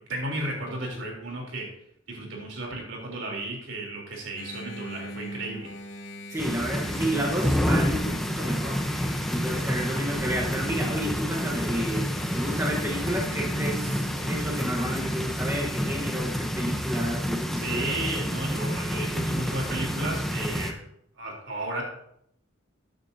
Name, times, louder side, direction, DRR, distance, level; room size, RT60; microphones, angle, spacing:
voice 1, 0.1-1.7 2.1-5.7 17.6-20.7 21.2-21.8, right 2 dB, 70° right, -1 dB, 3.6 m, -33 dB
Engine, 4.4-15.2, equal, 75° left, 1.4 m, -40 dB
voice 2, 6.3-8.8 9.3-18.0, equal, 15° right, -2 dB, 1.2 m, -31 dB
sound 1, 6.4-20.7, equal, ahead, 0.8 m, -29 dB
14.0 x 9.1 x 2.8 m, 0.73 s
head